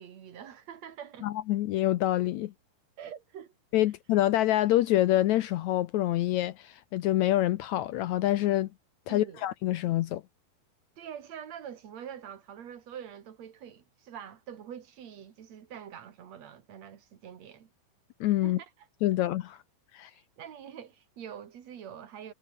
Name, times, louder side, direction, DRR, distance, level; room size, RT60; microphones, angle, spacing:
voice 1, 0.0-1.3 3.0-3.5 9.1-9.5 11.0-17.7 18.4-18.7 20.4-22.3, right 9 dB, 50° right, 2.9 m, -45 dB
voice 2, 1.2-2.5 3.7-8.7 9.1-10.2 18.2-18.6 19.0-19.6 19.9-20.1, left 14 dB, 90° left, 1.6 m, -26 dB
omnidirectional pair, 4.3 m